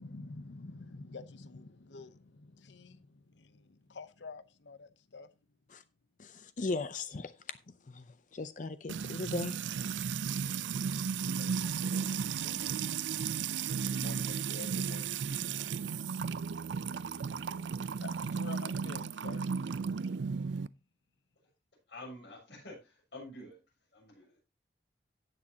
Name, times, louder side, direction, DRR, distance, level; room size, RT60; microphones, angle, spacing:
voice 1, 0.0-5.3 11.2-11.7 12.3-12.9 13.9-15.6 17.4-19.4, left 3 dB, 85° left, 0.8 m, -49 dB
voice 2, 6.2-7.6 7.9-9.8, left 3 dB, 45° left, 0.5 m, -38 dB
Music / Water tap faucet / Trickle dribble, 8.9-20.7, right 6 dB, 90° right, 0.4 m, -34 dB
voice 3, 21.9-23.6 23.9-24.4, left 1 dB, 70° left, 7.0 m, -48 dB
17.5 x 6.4 x 2.8 m
head